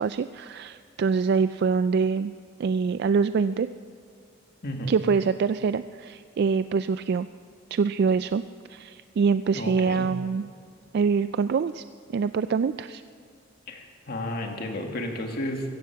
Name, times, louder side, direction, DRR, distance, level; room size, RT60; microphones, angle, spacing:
voice 1, 0.0-2.3 2.6-3.7 4.9-7.3 7.7-8.4 8.7-10.5 10.9-11.8 12.1-13.0, right 5 dB, 55° right, 13 dB, 0.3 m, -24 dB
voice 2, 4.6-5.0 9.5-10.1 13.7-15.8, left 1 dB, 55° left, 2 dB, 1.9 m, -32 dB
15.5 x 15.5 x 5.8 m, 2.2 s
head